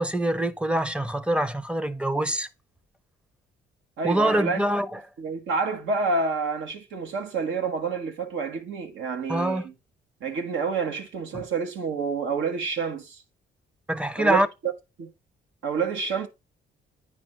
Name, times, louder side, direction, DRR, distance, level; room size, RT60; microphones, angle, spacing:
voice 1, 0.0-2.5 4.0-5.0 9.3-9.7 11.3-11.4 13.9-14.5, right 1 dB, 5° right, 0.7 m, -25 dB
voice 2, 4.0-4.6 5.2-9.7 10.2-13.2 14.2-14.7 15.0-15.1 15.6-16.3, right 4 dB, 75° right, 1.2 m, -28 dB
9.1 x 5.1 x 3.0 m
cardioid pair, 90°, 20 cm